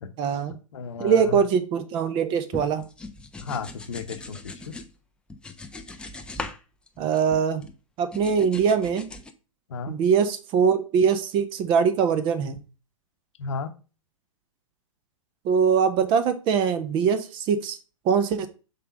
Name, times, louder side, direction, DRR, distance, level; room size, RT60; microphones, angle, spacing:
voice 1, 0.2-0.6 1.0-2.8 7.0-7.6 8.0-9.1 9.9-12.6 15.4-17.8 18.0-18.5, right 6 dB, 30° right, 9 dB, 0.7 m, -22 dB
voice 2, 0.7-1.4 3.4-4.5 9.7-9.9 13.4-13.7, left 5 dB, 55° left, 9 dB, 0.9 m, -33 dB
sound 1, 2.5-4.9 5.3-6.6 6.9-7.7 8.1-9.3, left 3 dB, 5° left, 0.5 m, -39 dB
5.5 x 3.8 x 5.2 m, 0.34 s
figure-of-eight pair, 105°, 18 cm